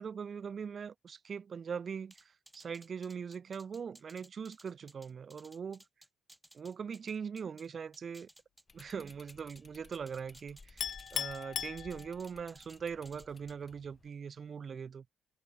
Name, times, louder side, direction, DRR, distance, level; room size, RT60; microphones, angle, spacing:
voice 1, 0.0-5.8 6.5-8.3 8.7-10.9 11.1-15.1, right 6 dB, 45° right, 2.0 m, -41 dB
sound 1, 2.1-7.7 7.9-9.6 9.9-11.4 11.8-12.8 13.0-13.5, right 1 dB, 10° right, 1.5 m, -59 dB
sound 2, 8.7-14.1, left 4 dB, 30° left, 1.4 m, -58 dB
Chink clink, 10.8-12.5, left 9 dB, 60° left, 0.6 m, -38 dB
cardioid pair, 90°, 0 cm